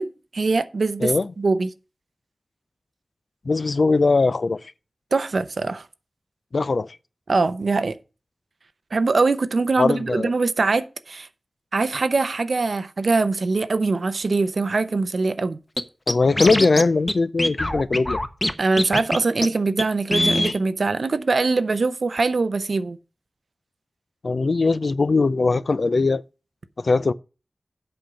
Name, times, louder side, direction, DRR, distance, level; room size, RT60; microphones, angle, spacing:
voice 1, 0.0-1.7 5.1-5.8 7.3-8.0 8.9-11.3 11.7-15.6 18.6-23.0, right 3 dB, 80° right, 0.7 m, -22 dB
voice 2, 1.0-1.3 3.5-4.6 6.5-7.0 9.8-10.3 16.1-18.2 24.2-26.2 26.8-27.1, left 3 dB, 70° left, 0.4 m, -20 dB
Scratching (performance technique), 15.8-15.9 16.1-16.8 17.1-17.2 17.4-18.5 18.8-19.2 19.4-19.5 19.8-19.9 20.1-20.6, left 1 dB, 25° left, 0.9 m, -22 dB
7.9 x 5.2 x 7.0 m
wide cardioid pair, 85°, 0 cm